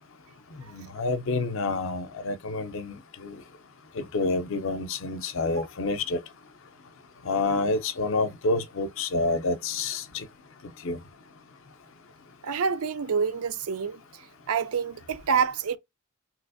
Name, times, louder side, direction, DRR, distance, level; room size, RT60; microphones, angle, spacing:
voice 1, 0.7-3.4 4.0-6.2 7.3-10.2 10.8-11.0, left 3 dB, 60° left, 0.5 m, -28 dB
voice 2, 12.4-14.0 14.5-15.8, right 6 dB, 75° right, 0.5 m, -27 dB
3.3 x 2.9 x 2.5 m
head